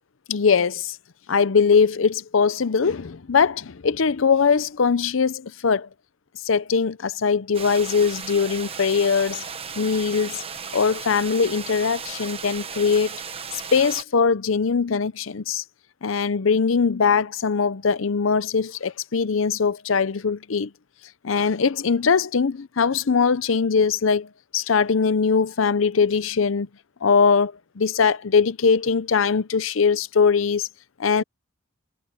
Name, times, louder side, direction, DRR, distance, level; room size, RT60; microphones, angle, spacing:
voice 1, 0.3-1.0 1.3-5.9 6.4-9.4 9.8-10.4 10.7-13.2 13.7-15.6 16.0-20.7 21.2-24.3 24.5-26.7 27.0-30.7 31.0-31.2, left 5 dB, 75° left, 0.6 m, -21 dB
sound 1, 7.5-14.0, right 6 dB, 30° right, 1.2 m, -35 dB
head